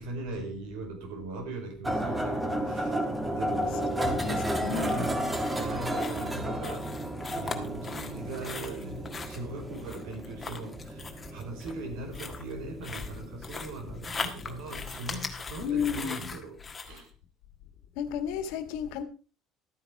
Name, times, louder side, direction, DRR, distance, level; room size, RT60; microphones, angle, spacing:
voice 1, 0.0-3.0 3.3-5.2 5.5-7.0 7.4-17.1, right 2 dB, 85° right, 5.2 m, -40 dB
sound 1, 1.8-15.1, right 1 dB, 10° right, 1.6 m, -33 dB
voice 2, 4.1-5.0 15.6-16.3 17.9-19.0, left 8 dB, 85° left, 1.7 m, -33 dB
sound 2, 4.2-17.0, left 4 dB, 20° left, 1.6 m, -41 dB
13.0 x 9.4 x 4.7 m
cardioid pair, 150°, 0 cm